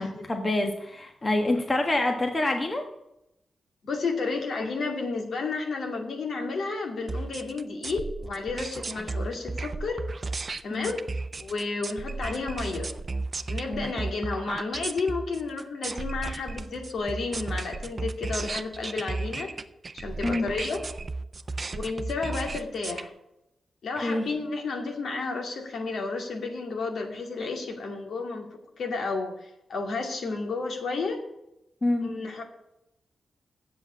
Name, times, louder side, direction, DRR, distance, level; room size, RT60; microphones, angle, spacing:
voice 1, 0.0-2.8 10.7-10.9 13.7-13.9 20.2-20.4 24.0-24.2 31.8-32.0, left 2 dB, 30° left, 4 dB, 1.3 m, -26 dB
voice 2, 3.8-10.0 10.6-11.0 11.4-12.9 13.5-19.5 19.9-20.8 21.7-23.1 23.8-28.5 28.8-31.2 32.0-32.4, left 3 dB, 70° left, 3 dB, 2.4 m, -32 dB
sound 1, 7.1-23.0, right 3 dB, 35° right, 0.6 m, -34 dB
8.0 x 7.7 x 8.4 m, 0.85 s
wide cardioid pair, 110°, 0 cm